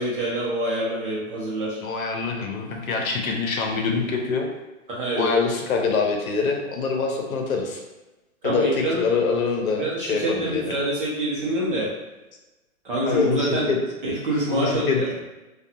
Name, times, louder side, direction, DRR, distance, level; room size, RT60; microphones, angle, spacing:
voice 1, 0.0-1.8 4.9-5.2 8.4-9.0 9.7-11.9 12.8-13.7 14.0-15.1, right 1 dB, 40° right, -5 dB, 0.7 m, -26 dB
voice 2, 1.8-4.5 5.2-7.8 8.4-10.7 13.1-13.8 14.5-15.0, left 4 dB, 75° left, 1 dB, 0.7 m, -25 dB
2.5 x 2.3 x 2.7 m, 1.1 s
hypercardioid pair, 180°, 42 cm